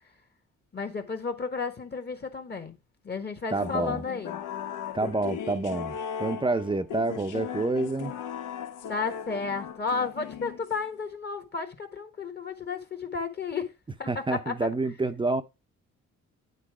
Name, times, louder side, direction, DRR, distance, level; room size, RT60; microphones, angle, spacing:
voice 1, 0.7-2.8 3.0-4.4 8.9-13.7 14.0-14.7, left 4 dB, 35° left, 1.4 m, -33 dB
voice 2, 3.5-4.0 4.9-8.1 14.1-15.4, right 2 dB, 15° right, 0.6 m, -28 dB
sound 1, 3.6-11.0, left 8 dB, 85° left, 1.1 m, -37 dB
9.2 x 4.0 x 4.8 m
cardioid pair, 90°, 30 cm